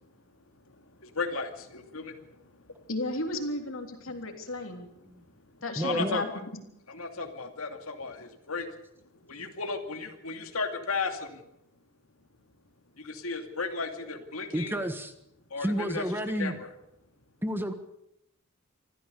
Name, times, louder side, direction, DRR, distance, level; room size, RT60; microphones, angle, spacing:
voice 1, 1.0-2.3 5.8-6.2 6.9-8.7 9.3-11.4 13.0-14.8 15.5-16.0 16.4-16.7, left 4 dB, 90° left, 5 dB, 2.5 m, -34 dB
voice 2, 2.9-4.9 5.6-6.3 6.5-6.6, left 2 dB, 70° left, 4 dB, 3.4 m, -34 dB
voice 3, 5.8-6.2 14.5-15.1 15.6-16.6 17.4-17.7, equal, 10° right, 8 dB, 1.4 m, -30 dB
25.5 x 14.5 x 6.9 m, 0.79 s
head